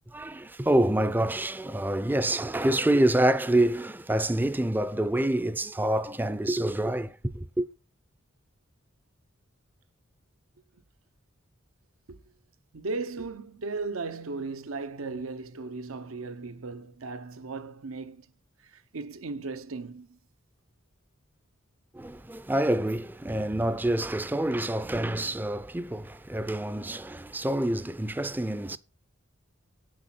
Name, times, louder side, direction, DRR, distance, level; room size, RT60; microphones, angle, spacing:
voice 1, 0.1-7.7 21.9-28.8, right 1 dB, 10° right, 0.4 m, -27 dB
voice 2, 12.7-18.3 18.6-20.2, right 3 dB, 85° right, 0.8 m, -36 dB
8.4 x 6.4 x 5.9 m
head